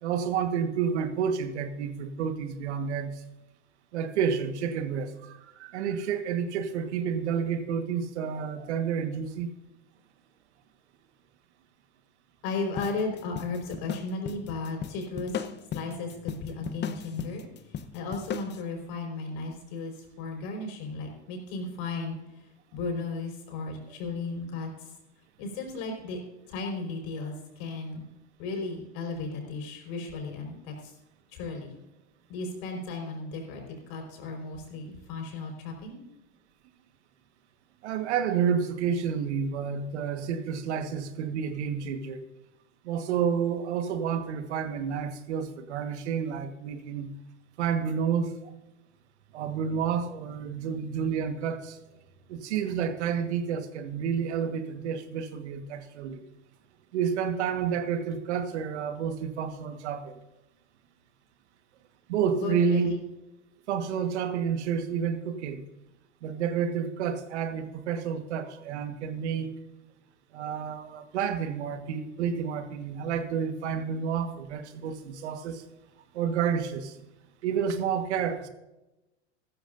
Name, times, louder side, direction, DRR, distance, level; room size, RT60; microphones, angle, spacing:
voice 1, 0.0-3.2 3.9-9.5 37.8-42.2 42.8-47.1 47.6-48.5 49.3-51.8 52.3-56.2 56.9-60.1 62.1-62.9 63.7-65.6 66.2-69.5 70.3-75.6 76.1-77.0 77.4-78.5, right 7 dB, 70° right, 1.6 m, -30 dB
voice 2, 12.4-15.3 15.7-17.4 17.9-22.4 22.7-24.9 25.4-26.2 26.5-28.0 28.4-30.9 31.3-31.7 32.3-36.0 62.4-63.0, left 3 dB, 60° left, 5.0 m, -35 dB
sound 1, 12.8-18.6, left 8 dB, 30° left, 0.9 m, -37 dB
15.0 x 13.5 x 2.6 m
hypercardioid pair, 90°, 35 cm